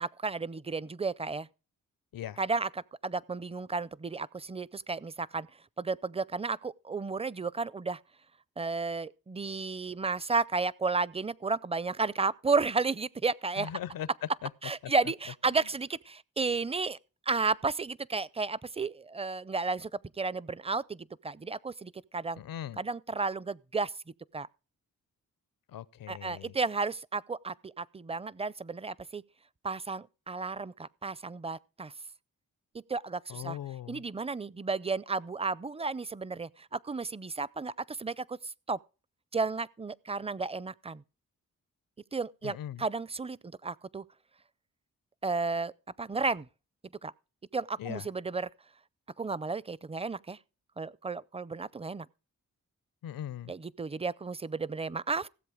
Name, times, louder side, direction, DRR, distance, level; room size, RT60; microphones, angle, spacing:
voice 1, 0.0-1.5 2.4-5.5 5.8-8.0 8.6-13.7 14.6-17.0 17.3-19.9 20.2-22.4 22.8-23.9 24.3-24.5 26.1-29.2 29.6-31.9 32.9-33.6 33.9-38.8 39.3-41.0 42.1-44.0 45.2-45.7 46.0-46.5 47.0-47.1 47.5-48.5 49.2-50.4 50.8-52.1 53.5-55.3, right 4 dB, 20° right, 0.5 m, -33 dB
voice 2, 13.6-14.1 14.4-14.5 14.8-14.9 15.5-15.6 22.4-22.8 25.7-26.5 33.3-34.0 42.4-42.9 47.8-48.1 53.0-53.5, left 11 dB, 85° left, 0.7 m, -39 dB
16.5 x 7.6 x 5.0 m
cardioid pair, 65°, 33 cm